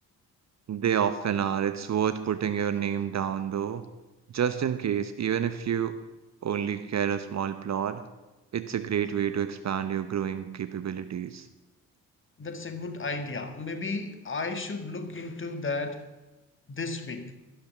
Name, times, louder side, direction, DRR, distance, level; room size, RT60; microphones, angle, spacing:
voice 1, 0.7-3.8 4.3-5.9 6.4-8.0 8.5-11.5, right 8 dB, 35° right, 10 dB, 1.0 m, -28 dB
voice 2, 12.4-16.1 16.7-17.3, left 3 dB, 25° left, 6 dB, 1.8 m, -34 dB
12.0 x 12.0 x 5.6 m, 1.1 s
figure-of-eight pair, 45°, 44 cm